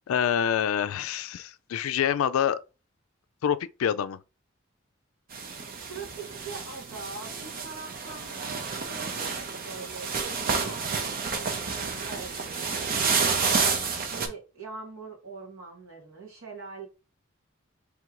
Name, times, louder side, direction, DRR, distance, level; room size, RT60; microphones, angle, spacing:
voice 1, 0.1-2.6 3.4-4.2, left 9 dB, 85° left, 0.3 m, -26 dB
sound 1, 5.3-14.3, right 5 dB, 45° right, 0.6 m, -30 dB
voice 2, 5.8-16.9, right 4 dB, 80° right, 1.8 m, -43 dB
3.5 x 2.5 x 4.6 m
head